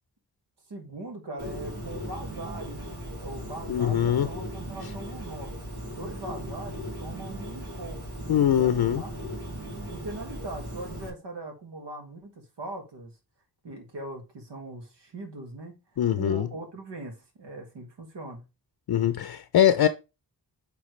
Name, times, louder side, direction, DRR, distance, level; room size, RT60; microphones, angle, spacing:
voice 1, 0.7-5.5 5.9-9.1 9.9-13.1 13.6-18.5, right 2 dB, 85° right, 1.9 m, -40 dB
Bird, 1.4-11.1, equal, 65° right, 2.5 m, -38 dB
voice 2, 3.7-4.3 8.3-9.0 16.0-16.5 18.9-19.9, left 10 dB, 60° left, 0.6 m, -22 dB
8.6 x 3.5 x 3.2 m
cardioid pair, 45°, 42 cm